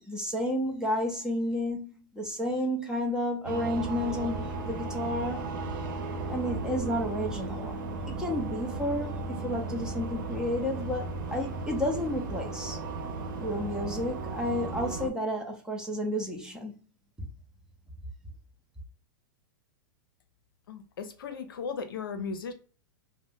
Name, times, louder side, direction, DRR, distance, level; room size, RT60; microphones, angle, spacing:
voice 1, 0.0-5.4 6.3-7.8 8.1-12.8 13.4-16.8 17.2-17.3, left 1 dB, 5° right, 0.7 m, -31 dB
sound 1, 3.4-15.1, right 3 dB, 65° right, 0.6 m, -35 dB
voice 2, 20.7-22.5, left 5 dB, 80° left, 0.6 m, -36 dB
2.4 x 2.1 x 3.6 m
hypercardioid pair, 120°, 12 cm